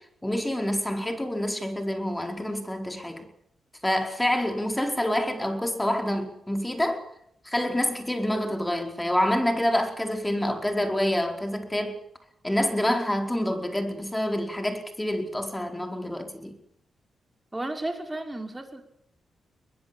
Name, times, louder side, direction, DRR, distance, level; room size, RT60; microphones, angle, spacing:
voice 1, 0.2-3.3 3.8-7.0 7.4-12.0 12.4-16.6, left 1 dB, 10° left, 4.9 m, -27 dB
voice 2, 17.5-18.8, right 2 dB, 15° right, 5.6 m, -33 dB
22.0 x 21.5 x 7.3 m
cardioid pair, 70°, 0 cm